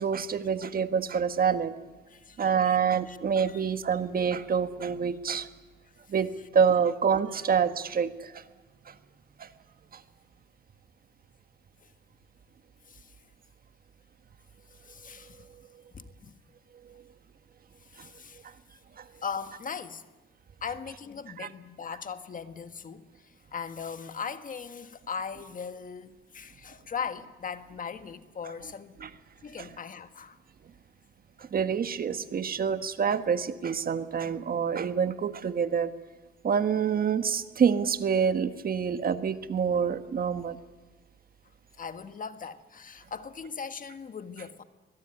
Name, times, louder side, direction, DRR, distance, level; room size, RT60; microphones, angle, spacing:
voice 1, 0.0-1.7 2.4-5.5 6.1-8.4 8.9-9.0 9.4-9.5 18.0-18.1 19.0-19.1 21.4-21.5 29.0-29.1 29.6-29.7 31.4-35.9 36.4-40.6, right 7 dB, 50° right, 1.5 m, -27 dB
voice 2, 2.1-2.8 3.1-3.2 3.5-3.7 7.3-7.4 12.9-13.1 14.8-15.5 15.9-16.4 17.9-18.4 19.2-20.0 20.6-29.0 29.4-30.4 39.7-39.8 41.8-44.6, left 6 dB, 45° left, 1.5 m, -39 dB
22.5 x 21.0 x 10.0 m
cardioid pair, 90°, 20 cm